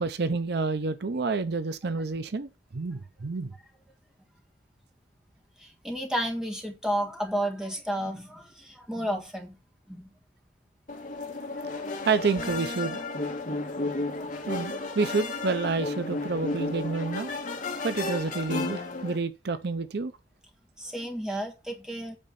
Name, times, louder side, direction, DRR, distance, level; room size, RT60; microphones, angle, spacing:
voice 1, 0.0-3.5 12.1-13.0 14.5-17.3 17.8-20.1, right 4 dB, 65° right, 0.7 m, -29 dB
voice 2, 5.6-9.6 9.9-10.1 11.7-12.1 13.5-13.6 20.8-22.2, equal, 5° right, 1.7 m, -32 dB
sound 1, 10.9-19.2, left 2 dB, 50° left, 1.5 m, -33 dB
8.8 x 3.9 x 6.9 m
head